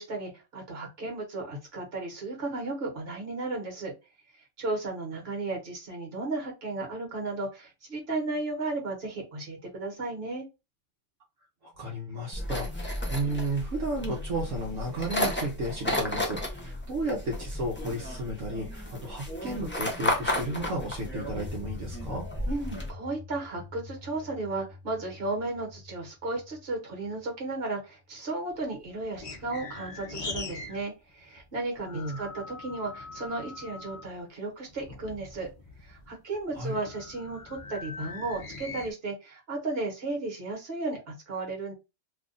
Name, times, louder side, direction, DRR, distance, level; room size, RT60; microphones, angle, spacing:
voice 1, 0.0-3.9 4.6-10.4 22.4-35.5 35.8-41.7, right 2 dB, 50° right, 1 dB, 1.5 m, -34 dB
voice 2, 11.6-22.3 31.9-32.2 36.5-36.8, right 1 dB, 75° right, -2 dB, 1.2 m, -33 dB
sound 1, 12.3-22.9, left 1 dB, 10° left, 0.6 m, -33 dB
sound 2, 21.2-27.8, left 3 dB, 40° left, 1.0 m, -46 dB
sound 3, 28.5-30.8 31.1-34.2 34.7-38.9, left 3 dB, 65° left, 0.3 m, -42 dB
2.8 x 2.4 x 3.8 m, 0.26 s
omnidirectional pair, 1.4 m